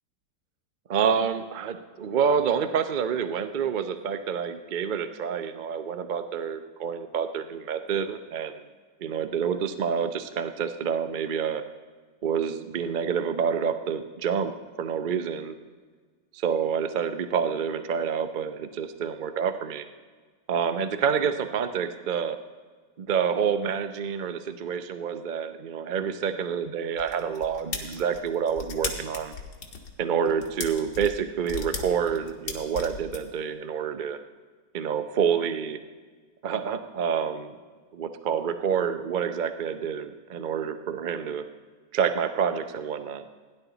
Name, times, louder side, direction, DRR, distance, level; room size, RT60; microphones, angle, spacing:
voice 1, 0.9-8.5 9.0-11.6 12.2-14.5 14.8-15.5 16.3-19.8 20.5-22.4 23.0-29.3 30.0-34.2 34.7-35.8 36.4-37.6 37.9-41.4 41.9-43.2, right 7 dB, 80° right, 9 dB, 0.4 m, -28 dB
sound 1, 27.0-33.2, left 5 dB, 65° left, 2.0 m, -36 dB
17.5 x 10.5 x 4.0 m, 1.5 s
omnidirectional pair, 2.0 m